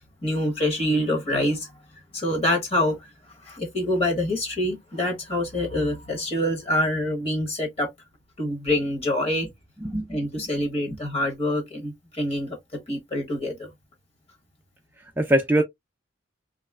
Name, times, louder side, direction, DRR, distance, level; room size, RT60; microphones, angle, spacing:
voice 1, 0.2-1.7 2.1-3.0 3.4-7.9 8.4-9.5 10.1-12.6 12.9-13.7, left 1 dB, 35° left, 1.0 m, -26 dB
voice 2, 9.8-10.2 10.9-11.0 15.2-15.6, right 1 dB, 10° right, 0.3 m, -22 dB
3.1 x 2.9 x 2.3 m
head